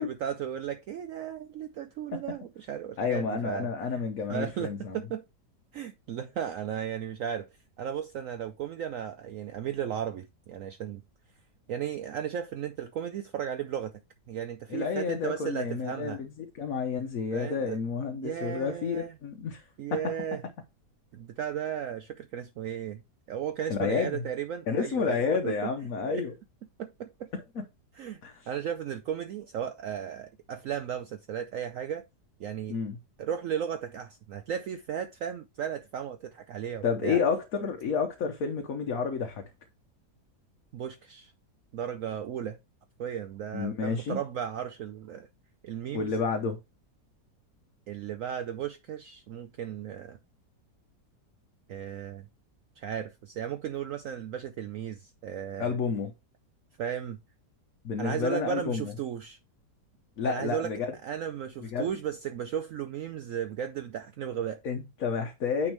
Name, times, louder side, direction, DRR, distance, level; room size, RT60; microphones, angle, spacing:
voice 1, 0.0-4.0 4.3-5.2 5.7-7.5 7.8-11.0 11.7-13.9 14.3-16.2 17.3-17.8 18.2-19.1 19.8-20.4 21.1-23.0 23.3-25.7 26.1-26.3 26.8-27.3 27.9-28.2 28.5-32.0 32.4-32.8 33.2-37.2 40.7-41.3 41.7-42.6 43.0-45.3 45.6-46.1 47.9-50.2 51.7-52.3 52.8-55.8 56.8-57.2 58.0-59.4 60.2-60.7 61.0-64.6, right 9 dB, 70° right, 0.8 m, -35 dB
voice 2, 3.0-5.0 14.7-19.6 23.7-24.2 24.7-26.3 28.2-28.5 32.7-33.0 36.8-39.4 43.5-44.2 45.9-46.6 55.6-56.1 57.8-58.9 60.2-60.9 61.6-61.9 64.6-65.7, left 5 dB, 60° left, 1.2 m, -30 dB
9.2 x 3.6 x 3.2 m
omnidirectional pair, 1.8 m